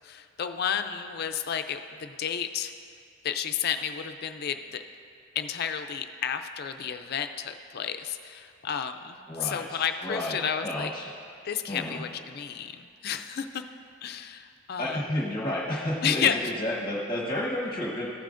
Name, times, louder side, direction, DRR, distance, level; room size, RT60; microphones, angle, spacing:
voice 1, 0.0-2.7 3.2-4.8 5.4-10.9 11.4-13.6 14.0-15.0 16.0-16.5, left 8 dB, 50° left, 8 dB, 0.4 m, -31 dB
voice 2, 9.3-10.4 10.6-11.1 11.7-12.0 14.8-18.1, left 1 dB, 25° left, -5 dB, 1.1 m, -31 dB
15.0 x 8.9 x 2.5 m, 2.3 s
head